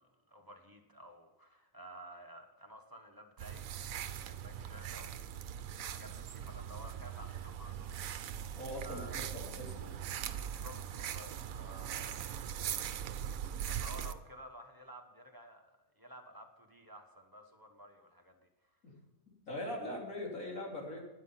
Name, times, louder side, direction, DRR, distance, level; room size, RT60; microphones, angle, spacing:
voice 1, 0.0-5.3 5.7-7.9 8.2-9.3 10.2-18.4, equal, 15° right, 3 dB, 1.2 m, -53 dB
sound 1, 3.4-14.1, right 9 dB, 75° right, 1.1 m, -41 dB
voice 2, 8.6-9.9 18.8-18.9 19.5-21.0, left 1 dB, 65° left, -2 dB, 3.5 m, -41 dB
12.0 x 9.7 x 5.7 m, 1.0 s
omnidirectional pair, 1.5 m